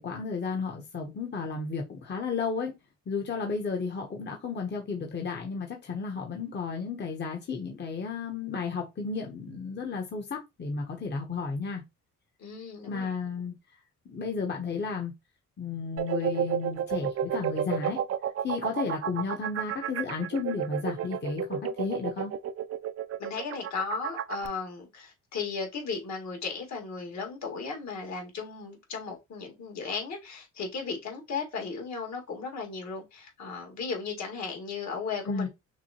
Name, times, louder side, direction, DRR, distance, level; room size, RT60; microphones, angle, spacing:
voice 1, 0.0-2.7 3.1-11.8 12.9-13.5 14.0-15.1 15.6-18.0 18.4-22.3 35.2-35.5, left 5 dB, 35° left, 1.0 m, -33 dB
voice 2, 12.4-13.1 23.2-35.5, left 5 dB, 65° left, 2.0 m, -36 dB
sound 1, 16.0-24.5, right 9 dB, 55° right, 0.5 m, -31 dB
5.9 x 2.2 x 2.9 m
cardioid pair, 90°, 30 cm